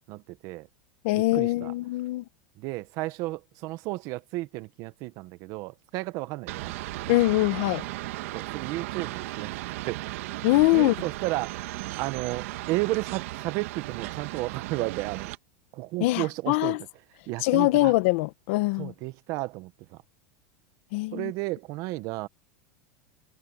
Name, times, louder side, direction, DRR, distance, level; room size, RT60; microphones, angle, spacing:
voice 1, 0.1-0.7 1.1-1.7 2.6-6.7 8.3-9.6 9.9-10.1 10.7-11.7 12.0-15.3 15.7-16.8 17.3-17.9 18.8-20.0 21.1-22.3, right 20 dB, 45° right, 1.1 m, -33 dB
voice 2, 1.0-2.2 7.1-7.8 10.4-10.9 16.0-16.8 17.4-18.9 20.9-21.3, left 19 dB, 55° left, 1.2 m, -23 dB
sound 1, 6.5-15.4, right 18 dB, 65° right, 1.5 m, -36 dB
supercardioid pair, 150°, 8 cm